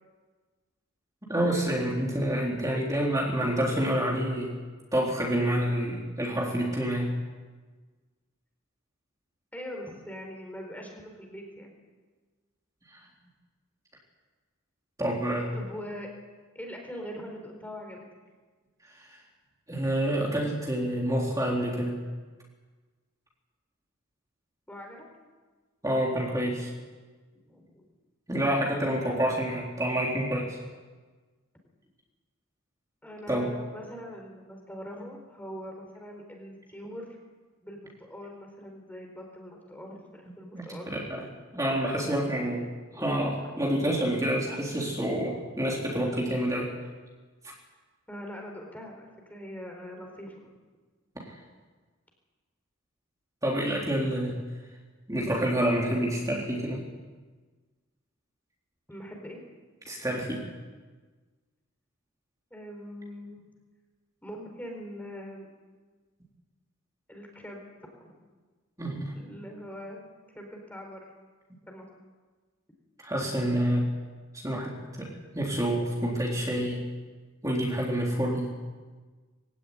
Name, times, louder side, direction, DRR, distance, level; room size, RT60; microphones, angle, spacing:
voice 1, 1.3-4.5 4.9-7.1 12.9-13.0 15.0-15.5 19.0-19.2 19.7-22.0 25.8-26.7 28.3-30.6 33.3-33.5 40.5-41.2 41.5-42.6 42.9-46.7 47.4-47.5 51.2-51.3 53.4-54.4 55.1-56.8 59.9-60.4 68.8-69.1 73.0-73.9 74.3-76.8 77.4-78.5, right 1 dB, 15° right, -3 dB, 3.9 m, -28 dB
voice 2, 2.7-3.0 9.5-11.7 15.5-16.1 16.5-18.1 24.7-25.1 27.3-27.9 33.0-37.2 37.6-40.9 42.9-43.1 43.4-43.9 48.1-50.4 58.9-59.4 62.5-63.4 64.2-65.5 67.1-67.6 67.9-68.2 69.1-71.1 71.7-71.9, equal, 10° left, 2 dB, 4.3 m, -42 dB
23.5 x 17.0 x 10.0 m, 1.4 s
head